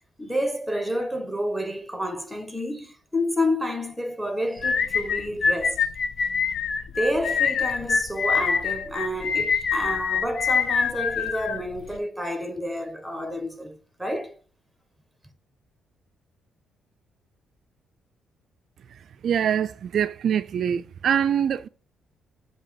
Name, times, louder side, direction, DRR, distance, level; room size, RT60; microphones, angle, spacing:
voice 1, 0.2-5.8 6.9-14.4, equal, ahead, 1.3 m, -29 dB
sound 1, 4.6-12.0, left 6 dB, 60° left, 0.8 m, -25 dB
voice 2, 18.9-21.7, right 8 dB, 60° right, 0.3 m, -24 dB
7.5 x 2.8 x 4.7 m
cardioid pair, 90°, 0 cm